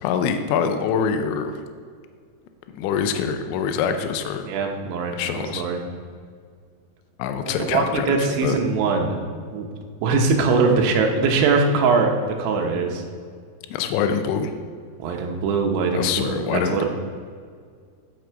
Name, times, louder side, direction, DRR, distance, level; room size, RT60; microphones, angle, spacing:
voice 1, 0.0-1.6 2.7-4.5 5.1-5.6 7.2-8.6 13.7-14.5 15.9-16.9, left 7 dB, 85° left, 7 dB, 3.1 m, -24 dB
voice 2, 4.5-5.8 7.5-9.2 9.5-9.7 10.0-12.1 12.4-13.0 15.0-16.9, right 4 dB, 85° right, 2 dB, 3.5 m, -22 dB
15.0 x 6.6 x 4.7 m, 2.1 s
omnidirectional pair, 5.3 m